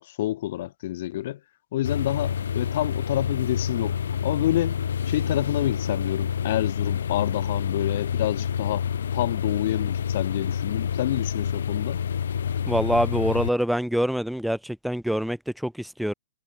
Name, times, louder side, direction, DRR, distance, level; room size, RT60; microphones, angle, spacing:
voice 1, 0.0-1.4 1.7-4.8 5.1-12.0, left 14 dB, 50° left, 3.3 m, -28 dB
sound 1, 1.8-13.5, left 8 dB, 90° left, 1.2 m, -28 dB
voice 2, 12.7-16.1, equal, ahead, 0.6 m, -25 dB
hypercardioid pair, 165°, 0 cm